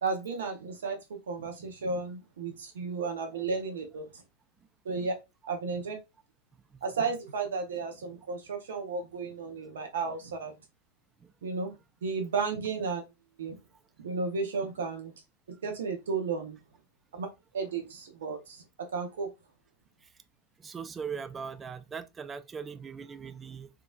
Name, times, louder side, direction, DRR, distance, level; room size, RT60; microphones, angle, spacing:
voice 1, 0.0-4.2 4.8-5.1 5.5-6.0 6.8-10.5 11.4-11.7 12.0-13.0 13.4-13.6 14.0-15.1 15.6-16.6 17.1-17.3 17.5-19.3, right 4 dB, 60° right, 0.7 m, -33 dB
voice 2, 20.6-23.7, right 6 dB, 20° right, 0.3 m, -40 dB
3.5 x 3.0 x 2.3 m
figure-of-eight pair, 90°, 0 cm